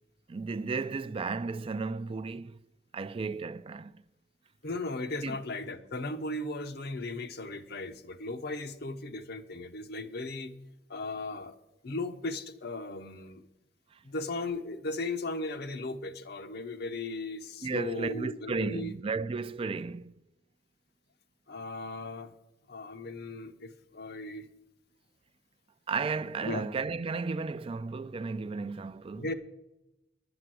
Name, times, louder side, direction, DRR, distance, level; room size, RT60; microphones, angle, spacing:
voice 1, 0.3-2.6 2.9-3.9 5.2-5.4 17.6-20.1 25.9-29.3, right 4 dB, 30° right, 0.3 m, -34 dB
voice 2, 4.6-10.5 10.9-11.6 11.8-13.4 14.0-18.9 21.5-22.3 22.7-24.5 26.4-26.6 29.2-29.3, left 2 dB, 60° left, 0.9 m, -37 dB
11.0 x 8.0 x 7.6 m
head